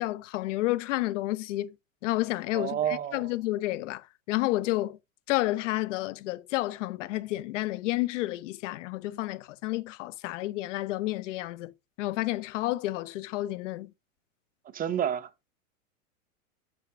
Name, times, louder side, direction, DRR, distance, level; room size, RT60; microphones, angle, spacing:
voice 1, 0.0-1.7 2.0-5.0 5.3-11.7 12.0-13.9, left 18 dB, 60° left, 0.8 m, -30 dB
voice 2, 2.5-3.3 14.7-15.3, right 9 dB, 20° right, 0.8 m, -29 dB
6.8 x 5.6 x 4.9 m
hypercardioid pair, 110°, 41 cm